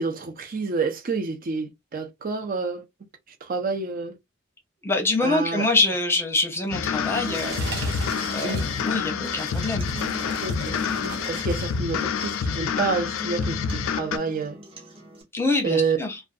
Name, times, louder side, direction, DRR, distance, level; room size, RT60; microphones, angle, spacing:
voice 1, 0.0-2.8 3.4-4.2 5.2-5.7 8.4-8.6 10.4-10.8 11.3-14.6 15.6-16.0, right 4 dB, 45° right, 0.4 m, -28 dB
voice 2, 4.8-8.0 8.3-9.9 15.3-16.2, left 2 dB, 10° left, 0.7 m, -25 dB
sound 1, 6.6-11.8 12.1-12.5 13.1-13.2, right 4 dB, 60° right, 0.8 m, -38 dB
sound 2, 6.7-14.2, left 6 dB, 75° left, 0.3 m, -28 dB
sound 3, 7.2-15.2, equal, 25° right, 0.8 m, -42 dB
2.4 x 2.2 x 2.4 m
head